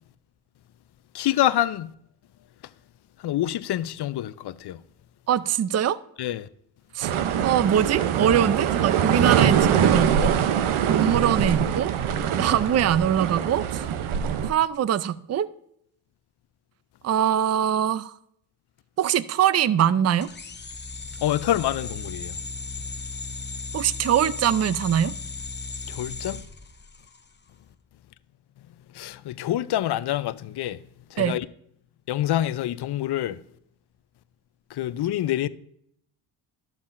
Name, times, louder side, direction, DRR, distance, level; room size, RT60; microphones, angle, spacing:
voice 1, 1.1-1.9 3.2-4.8 6.2-6.5 9.4-9.5 21.2-22.3 25.9-26.4 29.0-30.8 31.1-31.5 32.1-33.4 34.7-35.5, left 13 dB, 55° left, 0.6 m, -26 dB
voice 2, 5.3-6.0 6.9-7.1 7.4-10.4 10.9-11.9 12.3-13.8 14.4-15.5 17.0-18.1 19.0-20.3 23.7-25.1 31.2-31.4, right 9 dB, 35° right, 0.5 m, -22 dB
sound 1, 7.0-14.5, right 8 dB, 80° right, 0.8 m, -23 dB
sound 2, 20.2-27.3, left 3 dB, 20° left, 0.8 m, -36 dB
11.5 x 7.4 x 2.5 m
cardioid pair, 70°, 49 cm